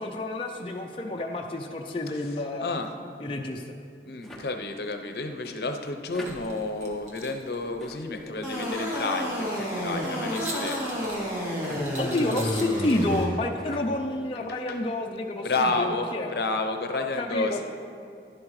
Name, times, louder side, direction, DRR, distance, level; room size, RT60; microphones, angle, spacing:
voice 1, 0.0-2.8 3.2-3.8 12.0-16.3 16.9-17.6, left 2 dB, 30° left, 1 dB, 0.5 m, -29 dB
voice 2, 2.6-2.9 4.1-10.9 14.5-14.8 15.4-17.6, left 3 dB, 65° left, 6 dB, 0.7 m, -30 dB
sound 1, 4.2-4.5 6.1-6.3 7.8-8.1 9.5-9.7 11.6-11.8 13.5-13.9 15.4-15.7, left 1 dB, ahead, 0.9 m, -44 dB
sound 2, 6.1-13.3, right 2 dB, 40° right, 1.3 m, -44 dB
sound 3, 8.4-13.2, equal, 15° right, 2.3 m, -30 dB
11.5 x 11.0 x 3.2 m, 2.4 s
head